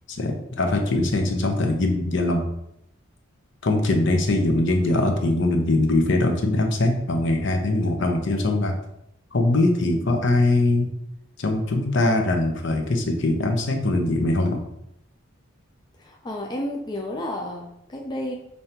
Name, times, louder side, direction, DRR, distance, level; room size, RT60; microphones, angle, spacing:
voice 1, 0.1-2.5 3.6-8.8 9.3-10.9 11.4-14.6, left 2 dB, 60° left, 3 dB, 0.7 m, -22 dB
voice 2, 16.0-18.3, left 1 dB, 20° left, 0 dB, 0.4 m, -31 dB
5.4 x 3.3 x 2.8 m, 0.79 s
head